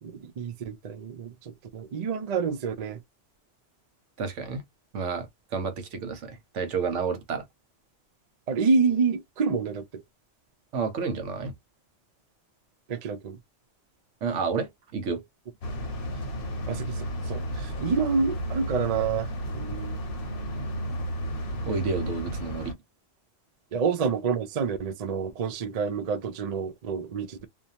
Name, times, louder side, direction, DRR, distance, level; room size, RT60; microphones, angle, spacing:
voice 1, 0.0-3.0 8.5-10.0 12.9-13.4 16.7-19.3 19.5-20.0 23.7-27.5, right 5 dB, 55° right, 0.4 m, -28 dB
voice 2, 4.2-4.6 4.9-7.4 10.7-11.5 14.2-15.2 21.7-22.8, right 5 dB, 75° right, 1.1 m, -30 dB
sound 1, 15.6-22.7, equal, 55° left, 0.8 m, -33 dB
2.6 x 2.1 x 2.7 m
omnidirectional pair, 1.3 m